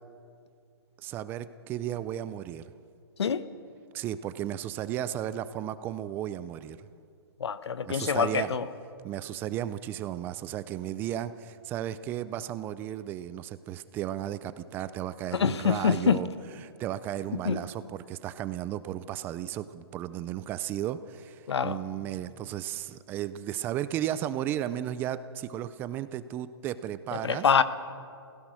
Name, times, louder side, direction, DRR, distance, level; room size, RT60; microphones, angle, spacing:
voice 1, 1.0-2.6 3.9-6.8 7.9-8.5 9.0-16.3 16.6-27.5, right 11 dB, 15° right, 0.4 m, -34 dB
voice 2, 7.4-8.6 15.3-16.2 17.4-17.6 21.5-21.8 27.2-27.6, left 7 dB, 90° left, 1.1 m, -25 dB
28.0 x 16.0 x 6.3 m
hypercardioid pair, 160°, 14 cm